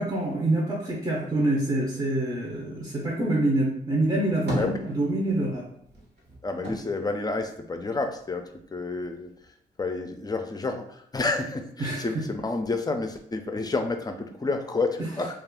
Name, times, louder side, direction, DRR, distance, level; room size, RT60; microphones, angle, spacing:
voice 1, 0.0-5.7 11.8-12.2, right 1 dB, 25° right, -3 dB, 0.7 m, -26 dB
sound 1, 4.0-5.5 5.8-8.2 8.6-9.5, right 1 dB, 75° right, 1.1 m, -35 dB
voice 2, 6.4-9.3 9.8-15.3, left 3 dB, 20° left, 6 dB, 0.4 m, -30 dB
2.4 x 2.3 x 3.5 m, 0.69 s
cardioid pair, 65°, 18 cm